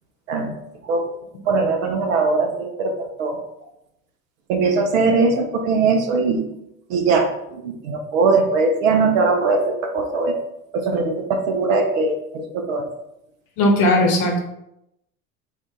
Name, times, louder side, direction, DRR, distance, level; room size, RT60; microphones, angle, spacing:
voice 1, 1.5-3.4 4.5-6.4 6.9-10.4 10.7-12.8, right 3 dB, 60° right, 4 dB, 0.7 m, -20 dB
voice 2, 13.6-14.4, left 1 dB, 50° left, 2 dB, 0.9 m, -17 dB
2.5 x 2.5 x 3.7 m, 0.82 s
figure-of-eight pair, 75°, 44 cm